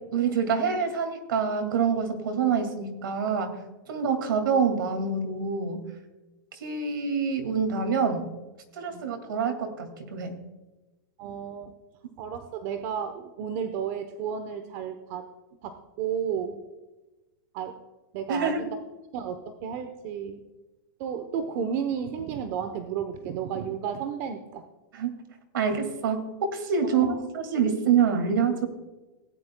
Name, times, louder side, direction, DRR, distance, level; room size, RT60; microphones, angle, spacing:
voice 1, 0.1-3.5 3.9-5.8 6.5-8.3 8.8-10.4 18.3-18.6 24.9-25.1 25.5-28.7, right 6 dB, 90° right, 5 dB, 2.2 m, -26 dB
voice 2, 11.2-11.7 12.2-15.2 15.6-16.6 17.5-17.8 18.1-18.7 19.1-20.4 21.0-24.6 26.9-27.2, right 7 dB, 45° right, 8 dB, 0.9 m, -32 dB
17.5 x 10.5 x 2.3 m, 1.1 s
supercardioid pair, 155°, 11 cm